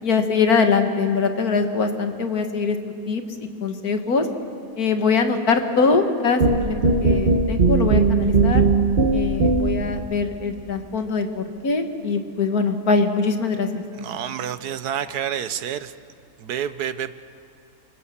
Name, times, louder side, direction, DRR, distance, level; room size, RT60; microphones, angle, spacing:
voice 1, 0.0-4.3 4.8-8.6 9.1-13.8, left 4 dB, 70° left, 6 dB, 2.1 m, -22 dB
sound 1, 6.4-9.9, right 3 dB, 40° right, 1.2 m, -19 dB
voice 2, 14.0-15.9 16.4-17.1, right 9 dB, 80° right, 13 dB, 1.4 m, -28 dB
29.5 x 25.0 x 7.3 m, 2.5 s
omnidirectional pair, 1.7 m